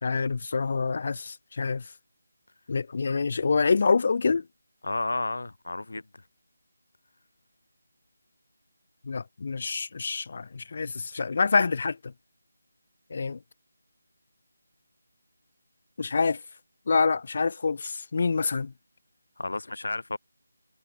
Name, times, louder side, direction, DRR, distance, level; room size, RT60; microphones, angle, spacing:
voice 1, 0.0-1.8 2.7-4.4 9.1-12.0 13.1-13.4 16.0-16.4 16.9-18.7, left 4 dB, 30° left, 1.6 m, -26 dB
voice 2, 4.8-6.2 19.4-20.2, left 2 dB, 70° left, 2.6 m, -32 dB
figure-of-eight pair, 180°, 0 cm